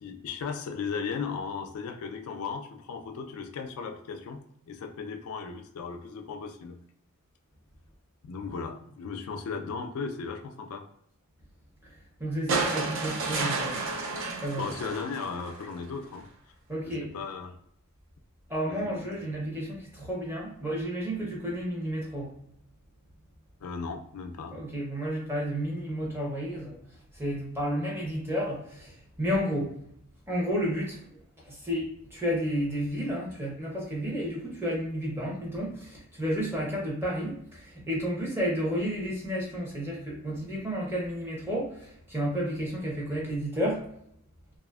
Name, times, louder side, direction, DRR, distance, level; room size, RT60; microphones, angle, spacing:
voice 1, 0.0-4.4 4.7-6.8 8.2-10.9 14.5-16.3 16.8-17.6 18.7-18.9 23.6-24.6, left 5 dB, 75° left, 5 dB, 0.3 m, -36 dB
voice 2, 11.8-13.9 14.3-14.7 16.7-17.1 18.5-22.3 24.5-26.8 27.1-29.8 30.3-31.2 31.4-43.8, equal, 10° right, -3 dB, 0.6 m, -31 dB
sound 1, 12.5-15.8 17.1-17.2, right 3 dB, 60° right, 0.4 m, -31 dB
2.6 x 2.4 x 2.3 m, 0.72 s
head